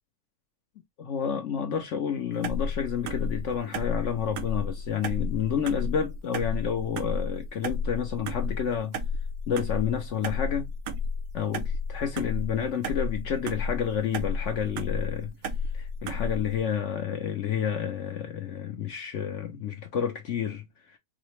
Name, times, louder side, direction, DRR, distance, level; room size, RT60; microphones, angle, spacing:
voice 1, 1.0-9.0 9.5-10.7 11.3-15.3 15.7-20.6, left 8 dB, 70° left, 0.7 m, -30 dB
sound 1, 2.4-16.6, left 3 dB, 70° right, 0.9 m, -32 dB
4.8 x 2.1 x 3.0 m
omnidirectional pair, 1.9 m